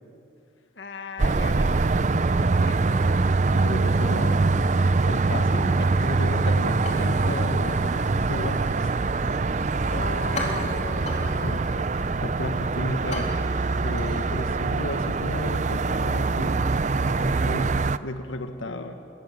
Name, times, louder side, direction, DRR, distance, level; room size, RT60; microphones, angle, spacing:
voice 1, 0.7-2.0 2.4-3.0 3.9-4.8 9.9-12.2 14.3-14.6 18.7-19.0, left 3 dB, 70° left, 6 dB, 1.4 m, -39 dB
sound 1, 1.2-18.0, right 3 dB, 40° right, 0.5 m, -24 dB
voice 2, 3.5-4.6 5.1-9.0 11.4-11.6 12.2-13.3 13.8-16.7 17.0-19.0, left 1 dB, 90° left, 7 dB, 1.5 m, -34 dB
sound 2, 6.8-15.0, left 2 dB, 35° left, 3.8 m, -39 dB
27.5 x 21.0 x 7.5 m, 2.7 s
head